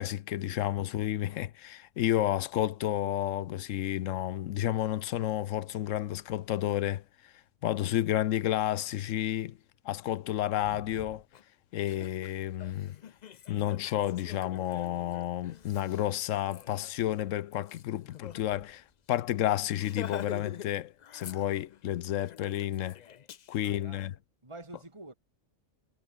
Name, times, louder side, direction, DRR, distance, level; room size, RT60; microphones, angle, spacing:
voice 1, 0.0-7.0 7.6-9.6 9.8-11.2 11.7-13.0 13.5-23.0 23.5-24.1, left 13 dB, 90° left, 1.0 m, -31 dB
voice 2, 10.6-11.2 11.8-12.2 23.6-24.2 24.4-25.1, right 2 dB, 25° right, 3.0 m, -49 dB
Laughter, 11.3-11.4 11.8-18.4 18.7-18.9 19.1-19.3 19.7-20.7 21.0-21.8 22.2-23.7, left 9 dB, 50° left, 0.5 m, -46 dB
omnidirectional pair, 1.3 m